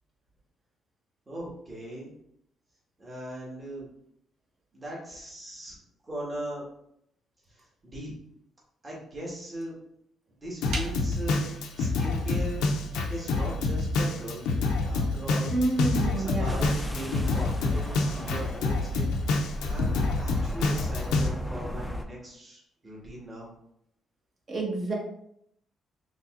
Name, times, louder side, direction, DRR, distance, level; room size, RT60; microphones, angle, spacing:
voice 1, 1.3-2.1 3.0-3.9 4.7-5.7 6.1-6.6 7.5-8.1 8.8-9.7 10.4-12.6 13.1-15.5 16.0-19.1 19.7-23.5, right 1 dB, 25° right, -5 dB, 1.5 m, -39 dB
Drum kit, 10.6-21.3, left 3 dB, 90° left, 0.5 m, -27 dB
sound 1, 10.7-19.8, right 1 dB, 80° right, 0.8 m, -45 dB
voice 2, 15.5-16.6 24.5-24.9, right 2 dB, 40° right, -2 dB, 1.2 m, -28 dB
sound 2, 16.5-22.1, equal, 5° left, 0.4 m, -36 dB
4.0 x 3.1 x 2.4 m, 0.74 s
cardioid pair, 90°, 0 cm